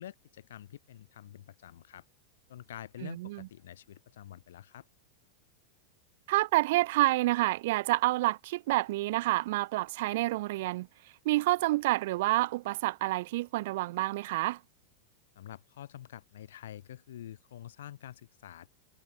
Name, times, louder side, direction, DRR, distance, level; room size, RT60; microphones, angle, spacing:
voice 1, 0.0-2.0 2.5-4.9 15.3-18.7, left 11 dB, 85° left, 2.5 m, -47 dB
voice 2, 3.0-3.5 6.3-10.9 11.2-14.6, right 18 dB, 60° right, 0.6 m, -28 dB
supercardioid pair, 150°, 0 cm